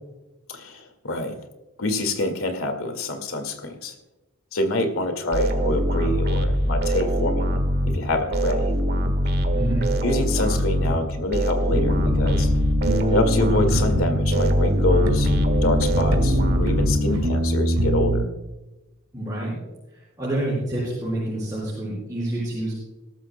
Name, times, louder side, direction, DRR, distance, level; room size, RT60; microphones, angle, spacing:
voice 1, 0.5-1.4 1.8-3.9 4.5-8.7 10.0-12.5 13.1-15.3 15.6-18.3, left 2 dB, 80° left, 6 dB, 2.0 m, -26 dB
sound 1, 5.3-17.5, equal, 50° right, 1.5 m, -23 dB
voice 2, 9.5-9.9 19.1-19.6 20.2-22.7, right 1 dB, 15° right, -7 dB, 5.0 m, -27 dB
sound 2, 11.7-18.2, equal, 85° right, 1.9 m, -23 dB
22.0 x 13.0 x 2.2 m, 1.1 s
head